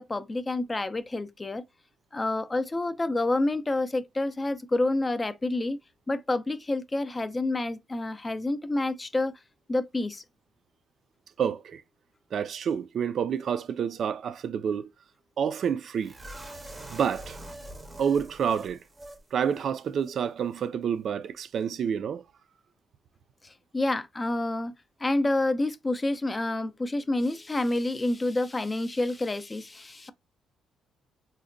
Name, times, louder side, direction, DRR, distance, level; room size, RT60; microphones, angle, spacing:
voice 1, 0.0-1.6 2.1-5.8 6.1-9.4 9.7-10.2 23.4-24.7 25.0-30.1, left 2 dB, 20° left, 0.3 m, -28 dB
voice 2, 11.4-11.8 12.3-14.9 15.4-16.1 16.9-17.4 18.0-18.8 19.3-22.2, right 7 dB, 60° right, 0.3 m, -28 dB
sound 1, 16.0-19.2 19.5-19.6 20.0-20.1, right 1 dB, 20° right, 0.6 m, -43 dB
3.8 x 2.1 x 2.5 m
cardioid pair, 90°, 0 cm